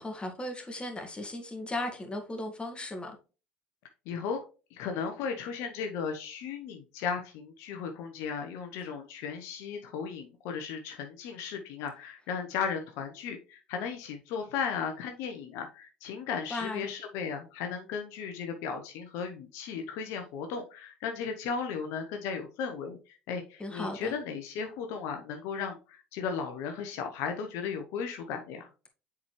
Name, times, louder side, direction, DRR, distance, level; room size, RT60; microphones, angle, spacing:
voice 1, 0.0-3.1 16.5-16.9 23.6-24.1, left 1 dB, 20° left, 2.1 m, -36 dB
voice 2, 4.1-4.4 4.7-28.7, left 6 dB, 70° left, 0.9 m, -36 dB
7.2 x 4.8 x 3.2 m
hypercardioid pair, 65°, 5 cm